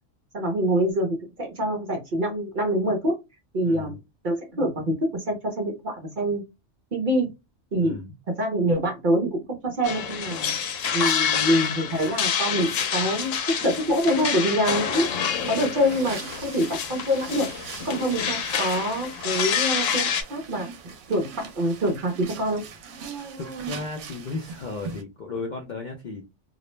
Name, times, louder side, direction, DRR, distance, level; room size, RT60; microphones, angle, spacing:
voice 1, 0.3-3.2 3.5-4.0 4.2-6.4 6.9-7.3 7.7-8.0 8.4-13.3 13.6-20.7 21.1-22.6, equal, 50° right, 3 dB, 0.6 m, -25 dB
voice 2, 3.6-3.9 7.8-8.1 23.4-26.2, left 3 dB, 60° left, 0 dB, 0.5 m, -35 dB
sound 1, 9.8-20.2, left 7 dB, 90° left, 1.0 m, -27 dB
sound 2, 15.0-25.0, right 6 dB, 75° right, 0.9 m, -41 dB
2.4 x 2.0 x 3.0 m, 0.23 s
omnidirectional pair, 1.3 m